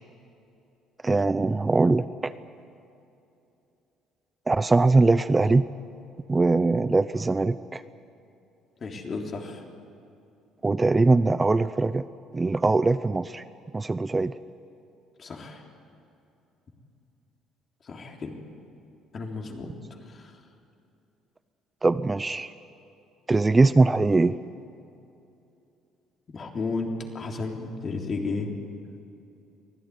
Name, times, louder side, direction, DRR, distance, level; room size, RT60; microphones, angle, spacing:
voice 1, 1.0-2.3 4.5-5.7 6.3-7.8 10.6-12.0 12.3-13.4 13.7-14.3 21.8-22.5 23.3-24.4, right 3 dB, 20° right, 14 dB, 0.5 m, -21 dB
voice 2, 8.8-9.6 15.2-15.6 17.8-18.4 19.1-19.7 20.0-20.3 26.3-28.5, left 3 dB, 40° left, 2 dB, 3.5 m, -33 dB
24.5 x 16.0 x 9.5 m, 2.8 s
cardioid pair, 95°, 0 cm